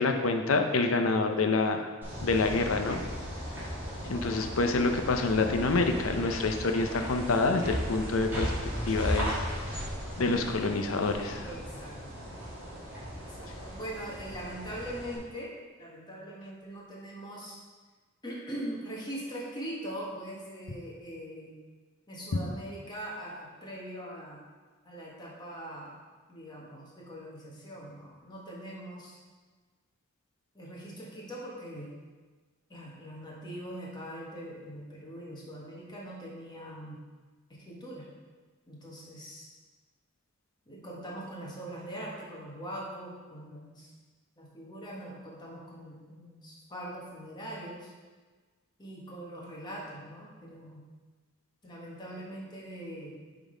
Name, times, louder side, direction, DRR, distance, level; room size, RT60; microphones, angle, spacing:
voice 1, 0.0-1.9 2.2-3.0 4.0-8.5 8.9-9.3 10.2-11.4, left 3 dB, 75° left, 5 dB, 0.6 m, -27 dB
sound 1, 2.0-15.2, equal, 10° right, 2.2 m, -36 dB
voice 2, 11.4-11.9 13.1-15.5 15.8-17.6 18.2-21.5 22.1-24.4 24.8-26.0 26.3-29.2 30.5-31.9 32.7-37.0 37.6-38.1 38.7-39.5 40.7-43.9 44.4-47.9 48.8-50.8 51.6-53.2, right 1 dB, 20° left, -4 dB, 1.4 m, -42 dB
7.1 x 3.8 x 5.0 m, 1.4 s
head